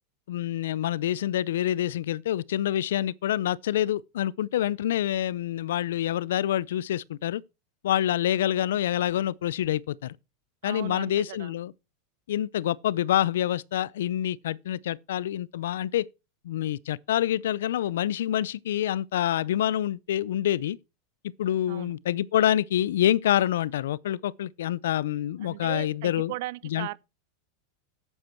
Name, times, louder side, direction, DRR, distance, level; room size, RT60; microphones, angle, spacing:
voice 1, 0.3-7.4 7.8-10.2 10.6-11.7 12.3-16.1 16.4-20.8 21.4-26.3 26.6-26.9, left 12 dB, 85° left, 0.5 m, -27 dB
voice 2, 10.6-11.5 21.7-22.0 25.4-27.0, right 18 dB, 65° right, 0.6 m, -37 dB
10.5 x 8.2 x 4.5 m
supercardioid pair, 120°, 0 cm